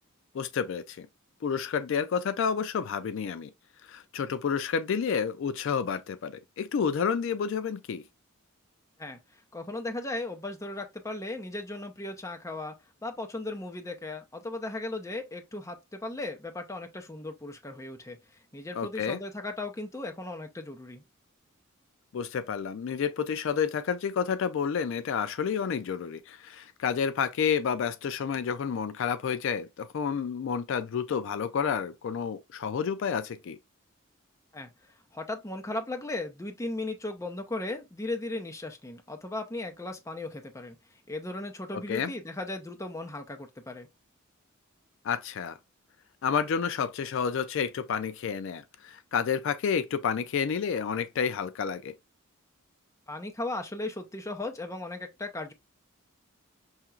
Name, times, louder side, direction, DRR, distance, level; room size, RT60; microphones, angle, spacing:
voice 1, 0.3-1.1 1.4-3.5 3.8-8.0 18.8-19.2 22.1-33.6 41.7-42.1 45.0-45.6 46.2-51.9, left 6 dB, 65° left, 0.3 m, -30 dB
voice 2, 9.5-12.7 13.0-18.2 18.5-21.0 34.5-34.7 35.1-40.8 41.1-43.9 53.1-55.5, left 2 dB, 15° left, 0.6 m, -36 dB
5.6 x 2.8 x 2.4 m
head